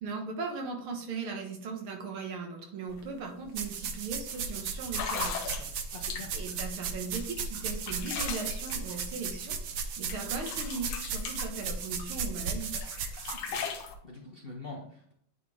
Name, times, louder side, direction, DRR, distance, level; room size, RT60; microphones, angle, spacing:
voice 1, 0.0-5.8 6.3-12.7, right 4 dB, 85° right, 2 dB, 2.3 m, -38 dB
sound 1, 2.9-3.0 3.4-3.7 4.3-4.4 4.9-6.5 7.1-9.8 10.1-12.2 12.6-13.9, left 6 dB, 90° left, 1.8 m, -39 dB
sound 2, 3.6-13.6, right 5 dB, 65° right, 1.3 m, -36 dB
voice 2, 5.9-6.3 13.5-15.1, left 3 dB, 40° left, -1 dB, 0.9 m, -45 dB
9.1 x 4.4 x 3.5 m, 0.65 s
omnidirectional pair, 2.3 m